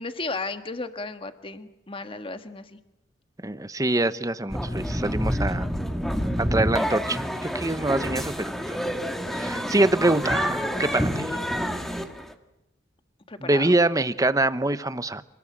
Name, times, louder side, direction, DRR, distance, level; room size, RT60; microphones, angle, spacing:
voice 1, 0.0-2.8 13.3-13.7, left 3 dB, 30° left, 8 dB, 1.6 m, -34 dB
voice 2, 3.4-5.7 6.4-8.8 9.3-11.2 13.4-15.2, right 2 dB, 20° right, 13 dB, 1.0 m, -25 dB
sound 1, 4.5-12.3, equal, ahead, 1.7 m, -28 dB
27.5 x 20.0 x 8.9 m, 0.88 s
head